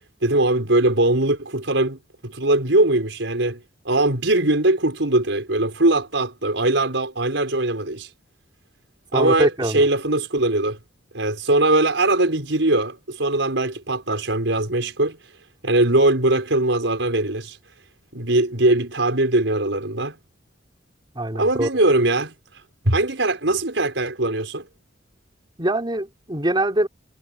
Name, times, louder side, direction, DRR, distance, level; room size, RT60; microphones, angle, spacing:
voice 1, 0.2-3.6 3.8-8.1 9.1-10.8 11.1-15.2 15.6-17.6 18.1-20.1 21.4-22.3 22.8-24.7, right 2 dB, 85° right, 4.8 m, -21 dB
voice 2, 9.1-9.9 21.2-21.7 25.6-26.9, right 1 dB, 25° right, 3.8 m, -23 dB
head